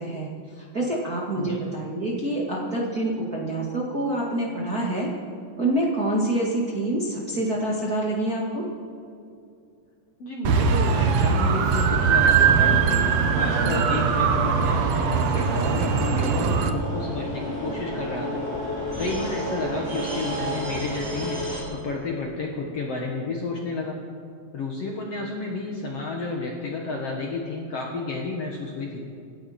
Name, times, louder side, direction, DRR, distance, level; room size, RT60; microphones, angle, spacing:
voice 1, 0.0-5.1 5.6-8.7, right 1 dB, 35° right, -4 dB, 1.7 m, -26 dB
voice 2, 10.2-18.4 19.0-21.4 21.7-24.0 24.5-29.0, left 3 dB, 55° left, -1 dB, 1.8 m, -31 dB
sound 1, 10.4-16.7, right 6 dB, 85° right, 1.5 m, -21 dB
sound 2, 13.3-21.6, equal, 5° right, 3.5 m, -31 dB
27.0 x 11.5 x 4.3 m, 2.4 s
omnidirectional pair, 4.3 m